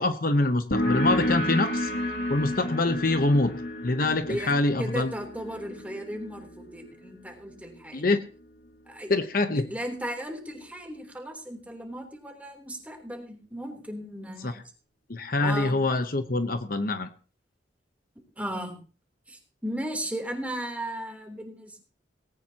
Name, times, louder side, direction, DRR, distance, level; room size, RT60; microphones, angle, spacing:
voice 1, 0.0-1.9 2.3-3.5 3.8-5.1 7.9-8.2 9.1-9.7 14.4-14.5 15.1-17.1, left 2 dB, 50° left, 8 dB, 1.0 m, -25 dB
sound 1, 0.7-8.0, left 1 dB, 75° left, 2.5 m, -31 dB
voice 2, 4.8-8.1 8.9-9.1 9.7-14.5 15.4-15.8 18.4-18.8 19.3-21.8, equal, 10° right, 2 dB, 3.4 m, -36 dB
19.0 x 17.5 x 2.9 m, 0.36 s
head